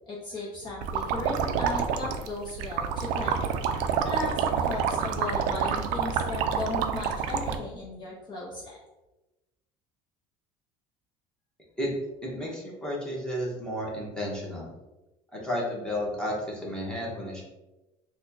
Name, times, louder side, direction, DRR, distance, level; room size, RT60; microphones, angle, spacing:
voice 1, 0.1-3.5 4.0-8.8, left 2 dB, 35° left, -5 dB, 0.8 m, -36 dB
sound 1, 0.8-7.6, right 7 dB, 75° right, 0.4 m, -28 dB
voice 2, 12.2-14.7 15.3-17.4, equal, 5° left, -4 dB, 1.0 m, -32 dB
4.1 x 2.2 x 2.7 m, 1.0 s
cardioid pair, 135°, 13 cm